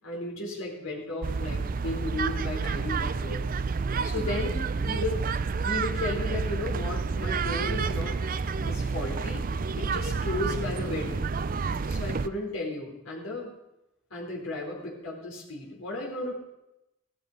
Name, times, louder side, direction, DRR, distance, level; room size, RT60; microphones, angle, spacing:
voice 1, 0.0-3.4 4.0-5.2 5.6-8.1 8.7-9.4 9.8-11.2 11.9-13.5 14.1-16.3, left 2 dB, 90° left, -3 dB, 4.3 m, -34 dB
sound 1, 1.2-12.3, right 4 dB, 40° right, 0.5 m, -29 dB
15.0 x 12.0 x 5.2 m, 0.89 s
head